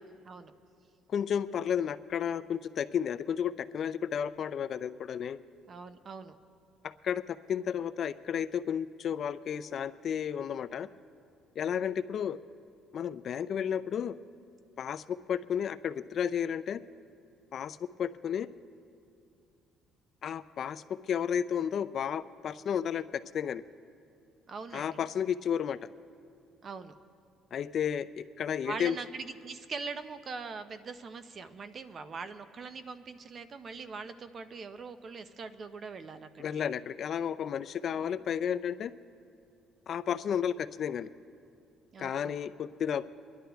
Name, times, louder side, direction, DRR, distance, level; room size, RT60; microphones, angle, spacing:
voice 1, 1.1-5.4 6.8-10.9 11.6-12.4 12.9-14.1 14.8-16.8 17.5-18.5 20.2-23.0 23.3-23.6 24.7-25.8 27.5-29.0 36.4-38.9 39.9-41.1 42.0-43.0, left 8 dB, 45° left, 14 dB, 0.3 m, -32 dB
voice 2, 5.7-6.4 24.5-25.0 26.6-26.9 28.6-36.6 37.9-38.2 41.9-42.4, right 4 dB, 35° right, 11 dB, 0.6 m, -42 dB
24.0 x 11.0 x 3.4 m, 2.5 s
cardioid pair, 150°, 0 cm